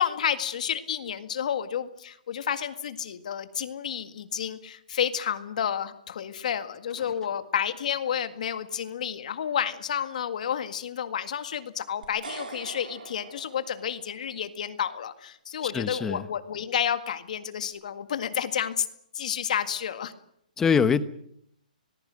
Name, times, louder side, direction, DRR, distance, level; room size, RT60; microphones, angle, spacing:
voice 1, 0.0-18.9 19.1-20.1, left 9 dB, 60° left, 9 dB, 1.8 m, -30 dB
sound 1, 12.0-14.3, right 4 dB, 80° right, 4.3 m, -43 dB
voice 2, 15.6-16.3 20.6-21.0, left 6 dB, 10° left, 13 dB, 1.0 m, -23 dB
26.0 x 20.0 x 6.3 m, 0.71 s
hypercardioid pair, 155°, 5 cm